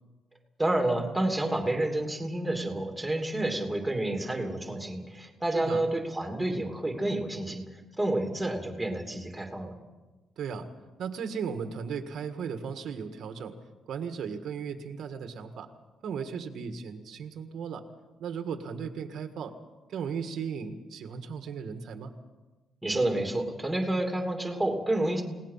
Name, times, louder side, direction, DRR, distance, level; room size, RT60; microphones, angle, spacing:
voice 1, 0.6-7.6 8.0-9.7 22.8-25.2, right 1 dB, 5° right, 3 dB, 2.9 m, -29 dB
voice 2, 5.5-5.8 10.4-10.7 11.0-13.5 13.9-15.7 16.0-17.8 18.2-19.5 19.9-22.1, right 6 dB, 70° right, 7 dB, 1.7 m, -36 dB
29.5 x 18.0 x 5.7 m, 1.2 s
cardioid pair, 150°, 0 cm